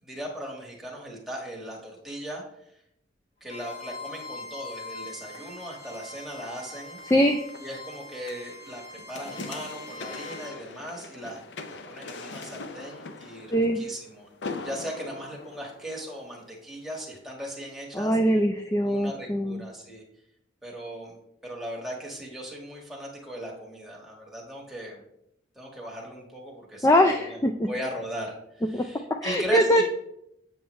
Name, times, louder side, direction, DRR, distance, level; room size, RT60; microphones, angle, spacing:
voice 1, 0.0-2.4 3.4-7.0 7.6-14.3 14.6-18.2 18.8-20.0 20.6-21.2 21.4-25.0 25.5-29.8, equal, ahead, -3 dB, 1.4 m, -38 dB
Bowed string instrument, 3.5-10.5, left 3 dB, 35° left, 2.6 m, -43 dB
sound 1, 5.2-16.5 17.0-17.1, left 3 dB, 75° left, 0.6 m, -42 dB
voice 2, 7.1-7.4 13.5-13.8 17.9-19.6 26.8-27.7 28.7-28.8 29.2-29.8, equal, 15° left, 5 dB, 0.4 m, -22 dB
7.2 x 7.1 x 3.1 m, 0.78 s
head